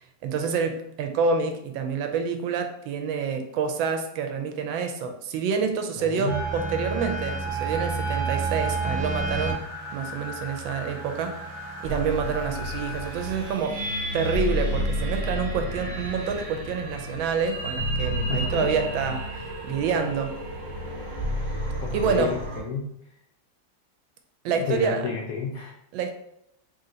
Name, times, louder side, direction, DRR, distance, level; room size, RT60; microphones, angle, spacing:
voice 1, 0.0-9.7 9.9-11.4 11.8-13.8 14.1-20.3 21.9-22.4 24.4-25.1 25.9-26.1, right 5 dB, 80° right, 6 dB, 1.3 m, -27 dB
voice 2, 6.0-6.4 18.3-18.7 21.8-22.9 24.5-25.7, left 5 dB, 85° left, 0 dB, 0.7 m, -31 dB
sound 1, 6.3-13.5, right 3 dB, 60° right, 1.2 m, -31 dB
sound 2, 11.8-22.6, equal, 25° right, 0.5 m, -31 dB
3.4 x 2.8 x 3.7 m, 0.77 s
omnidirectional pair, 2.1 m